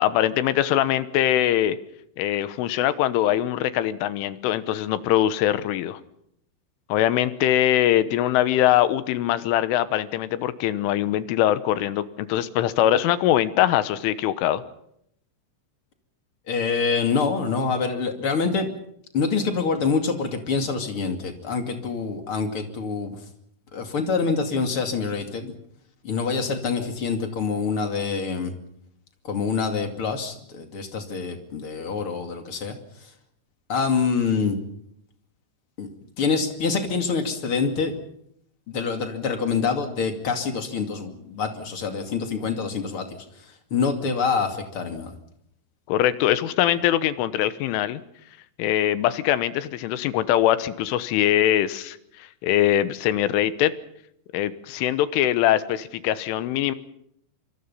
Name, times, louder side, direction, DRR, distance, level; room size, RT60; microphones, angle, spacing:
voice 1, 0.0-1.8 2.2-6.0 6.9-14.6 45.9-48.0 48.6-52.0 52.4-53.7 54.3-56.8, left 12 dB, 85° left, 14 dB, 3.6 m, -22 dB
voice 2, 16.5-18.7 19.1-23.2 23.7-25.5 26.0-28.5 29.2-32.7 33.7-34.6 35.8-35.9 36.2-37.9 38.7-43.2 43.7-45.1, left 5 dB, 40° left, 6 dB, 2.3 m, -26 dB
25.5 x 25.0 x 5.7 m, 0.73 s
omnidirectional pair, 5.6 m